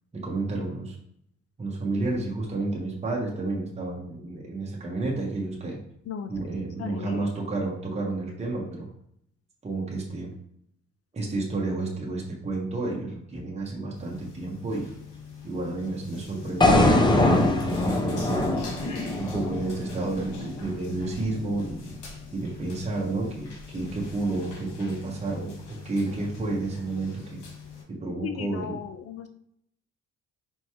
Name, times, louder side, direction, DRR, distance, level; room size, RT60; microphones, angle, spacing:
voice 1, 0.1-1.0 1.6-5.8 6.3-8.9 9.6-10.3 11.1-14.9 15.4-18.6 19.2-22.0 22.3-27.4 27.9-28.8, right 2 dB, 20° right, -3 dB, 1.1 m, -31 dB
voice 2, 6.8-7.3 28.2-29.3, left 7 dB, 50° left, 8 dB, 0.4 m, -36 dB
sound 1, 13.9-27.8, left 4 dB, 75° left, 1.5 m, -42 dB
sound 2, 16.6-20.7, left 2 dB, 15° left, 0.7 m, -22 dB
4.5 x 3.0 x 2.9 m, 0.72 s
cardioid pair, 90°, 30 cm